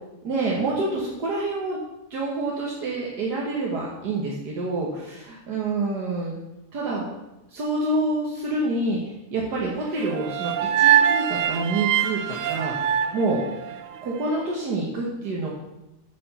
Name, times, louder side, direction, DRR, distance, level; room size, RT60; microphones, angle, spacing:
voice 1, 0.2-1.8 2.1-6.3 6.7-7.0 7.5-9.0 9.3-12.9 13.1-13.4 14.0-15.5, right 2 dB, 85° right, -3 dB, 2.0 m, -27 dB
sound 1, 10.0-14.2, right 10 dB, 65° right, 0.8 m, -23 dB
9.2 x 5.1 x 7.0 m, 0.94 s
omnidirectional pair, 1.7 m